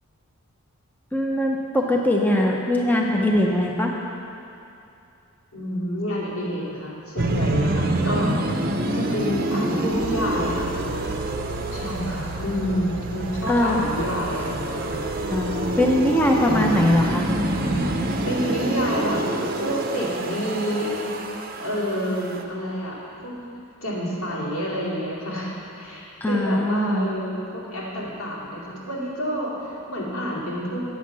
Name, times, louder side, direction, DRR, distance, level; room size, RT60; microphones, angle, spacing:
voice 1, 1.1-3.9 13.5-13.8 15.3-17.3 26.2-27.1, left 1 dB, 10° left, 0 dB, 0.5 m, -21 dB
voice 2, 5.5-8.4 8.9-10.9 11.7-15.0 16.4-16.8 18.3-19.3 19.6-21.1 21.6-23.3 23.8-30.8, equal, 90° left, -7 dB, 2.6 m, -28 dB
sound 1, 7.2-22.4, right 1 dB, 45° right, 0.6 m, -27 dB
Insect / Frog, 9.9-18.0, equal, 20° right, 0.9 m, -37 dB
sound 2, 10.0-20.9, right 6 dB, 85° right, 0.5 m, -41 dB
8.3 x 6.4 x 7.3 m, 2.7 s
head